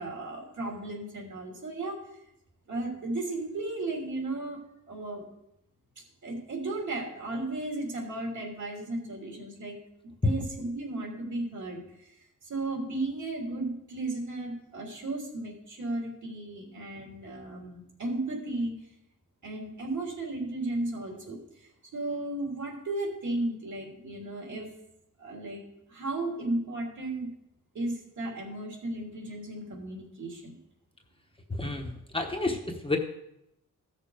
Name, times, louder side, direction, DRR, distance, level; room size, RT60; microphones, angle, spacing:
voice 1, 0.0-2.2 2.7-4.6 4.9-5.2 6.2-9.8 10.2-12.1 12.4-18.7 19.4-24.7 25.2-27.3 27.7-30.5, right 2 dB, 65° right, -1 dB, 3.1 m, -35 dB
voice 2, 31.5-33.0, left 2 dB, 15° left, 2 dB, 1.0 m, -31 dB
15.0 x 6.6 x 4.8 m, 0.82 s
wide cardioid pair, 165°, 31 cm